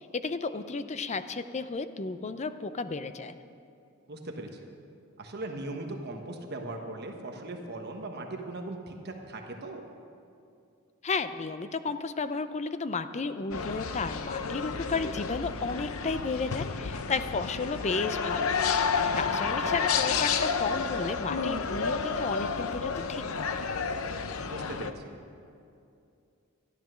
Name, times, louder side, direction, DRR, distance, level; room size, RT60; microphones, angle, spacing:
voice 1, 0.0-3.4 11.0-18.6 19.0-23.7, left 4 dB, 30° left, 11 dB, 0.5 m, -33 dB
voice 2, 4.1-4.6 5.2-9.8 19.4-19.7 24.5-25.0, right 2 dB, 50° right, 3 dB, 1.2 m, -39 dB
sound 1, 13.5-24.9, left 5 dB, 70° left, 0.7 m, -30 dB
13.5 x 11.5 x 6.3 m, 2.5 s
head